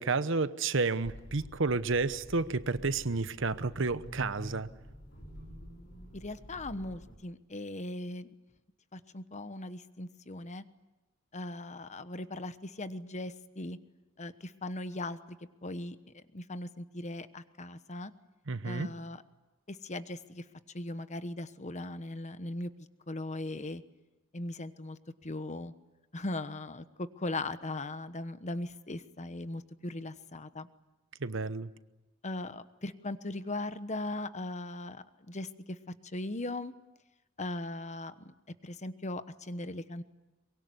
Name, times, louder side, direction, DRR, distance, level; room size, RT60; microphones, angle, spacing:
voice 1, 0.0-4.7 18.5-18.9 31.2-31.7, right 3 dB, 70° right, 14 dB, 1.0 m, -31 dB
sound 1, 1.0-7.2, equal, 60° left, 3.8 m, -48 dB
voice 2, 6.1-8.3 8.9-10.6 11.3-13.8 14.2-15.2 15.6-16.0 16.3-18.1 18.6-19.2 19.7-20.4 20.7-22.7 23.1-23.8 24.3-25.7 26.1-30.7 32.2-36.7 37.4-38.3 38.6-40.0, left 2 dB, 35° left, 12 dB, 1.1 m, -39 dB
23.5 x 22.5 x 9.6 m, 1.0 s
head